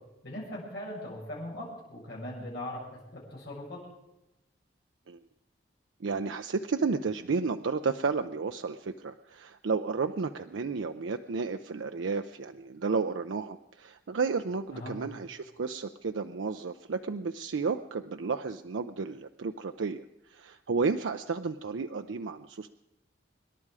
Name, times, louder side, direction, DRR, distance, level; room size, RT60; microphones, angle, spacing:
voice 1, 0.2-2.8 3.1-3.8 14.7-15.0, left 1 dB, 60° left, -4 dB, 7.2 m, -39 dB
voice 2, 6.0-22.7, right 4 dB, 90° right, 8 dB, 0.5 m, -32 dB
25.5 x 11.0 x 4.8 m, 0.91 s
head